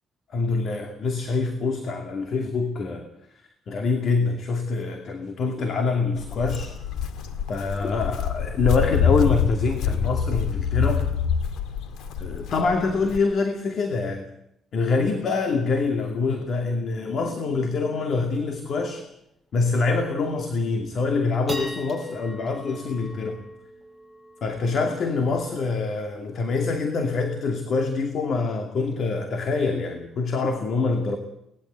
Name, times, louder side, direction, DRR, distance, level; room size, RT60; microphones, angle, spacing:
voice 1, 0.3-3.1 3.7-6.8 7.5-11.1 12.2-14.3 14.7-19.1 19.5-23.4 24.4-31.2, left 4 dB, 55° left, 5 dB, 2.5 m, -25 dB
Walk footsteps, 6.2-13.2, left 7 dB, 90° left, 1.9 m, -26 dB
sound 1, 18.0-18.1 18.3-18.4 18.8-19.1 19.6-19.7 20.2-20.6 21.0-27.6, right 1 dB, 10° left, 6.4 m, -42 dB
24.0 x 19.5 x 8.2 m, 0.78 s
cardioid pair, 130°, 0 cm